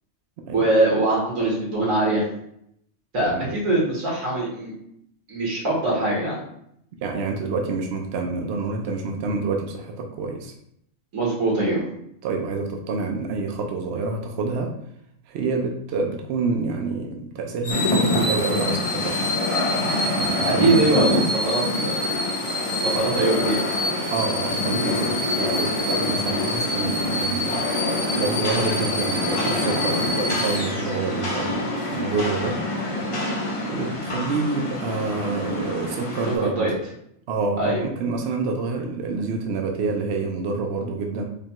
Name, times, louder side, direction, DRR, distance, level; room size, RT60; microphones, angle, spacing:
voice 1, 0.5-2.2 3.1-4.7 5.3-6.4 11.1-11.8 20.4-22.0 22.8-23.6 36.3-36.7 37.6-37.8, right 2 dB, 80° right, -5 dB, 1.8 m, -22 dB
voice 2, 7.0-10.5 12.2-14.7 15.3-19.2 20.1-20.9 22.9-23.0 24.1-27.6 28.1-32.6 33.7-36.7 37.3-41.2, right 4 dB, 65° right, 1 dB, 0.7 m, -27 dB
sound 1, 17.6-31.3 31.8-32.0, left 1 dB, 75° left, 1.3 m, -28 dB
Rain, 17.7-36.4, left 1 dB, 40° left, 0.5 m, -26 dB
5.0 x 2.3 x 2.9 m, 0.73 s
omnidirectional pair, 1.4 m